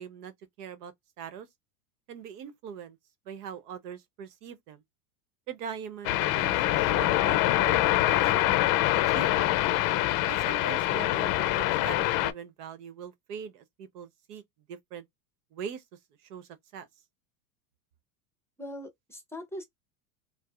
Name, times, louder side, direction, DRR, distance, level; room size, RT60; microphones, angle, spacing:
voice 1, 0.0-1.5 2.1-3.0 3.3-4.8 5.5-7.8 8.0-8.5 9.1-9.5 10.3-14.4 14.7-15.0 15.5-15.8 16.3-16.9, right 7 dB, 70° right, 0.9 m, -42 dB
sound 1, 6.0-12.3, left 15 dB, 45° left, 0.5 m, -25 dB
voice 2, 18.6-19.6, left 1 dB, 5° left, 0.7 m, -40 dB
4.6 x 2.0 x 2.4 m
supercardioid pair, 115°, 47 cm